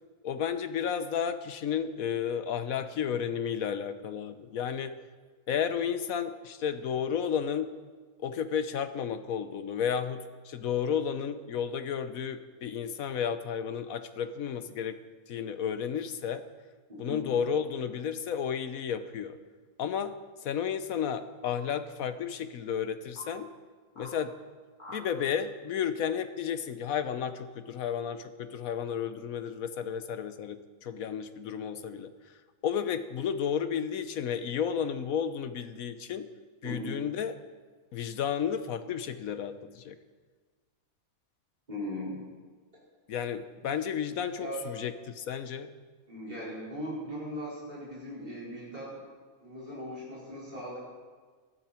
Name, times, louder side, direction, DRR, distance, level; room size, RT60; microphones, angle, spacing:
voice 1, 0.2-5.0 5.5-7.7 8.2-15.0 15.3-16.4 17.0-19.4 19.8-20.1 20.4-23.5 24.0-24.3 24.9-32.1 32.6-36.3 36.6-37.3 37.9-40.0 43.1-45.7, left 8 dB, 80° left, 10 dB, 1.3 m, -32 dB
voice 2, 16.9-17.2 36.6-37.0 41.7-42.2 44.4-44.6 46.1-49.0 49.4-50.8, equal, 30° right, -8 dB, 5.1 m, -39 dB
sound 1, 17.3-17.4 18.9-19.3 21.4-21.6 22.4-22.5 23.1-23.3 24.0-24.1 24.8-25.0, left 1 dB, 30° left, 2.9 m, -47 dB
19.0 x 13.0 x 4.4 m, 1.5 s
omnidirectional pair, 1.4 m